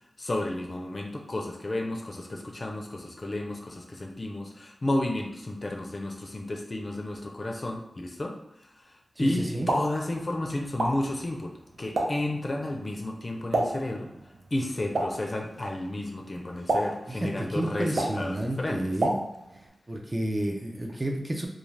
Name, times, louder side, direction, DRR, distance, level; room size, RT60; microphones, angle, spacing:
voice 1, 0.2-11.5 11.8-14.1 14.5-18.8, left 1 dB, 45° left, 1 dB, 0.4 m, -32 dB
voice 2, 9.2-9.7 17.1-19.2 19.9-21.5, right 1 dB, 25° right, 1 dB, 0.5 m, -30 dB
Explosion, 9.4-19.7, right 1 dB, 70° right, 0.6 m, -33 dB
2.4 x 2.3 x 3.2 m, 0.78 s
wide cardioid pair, 60°, 0 cm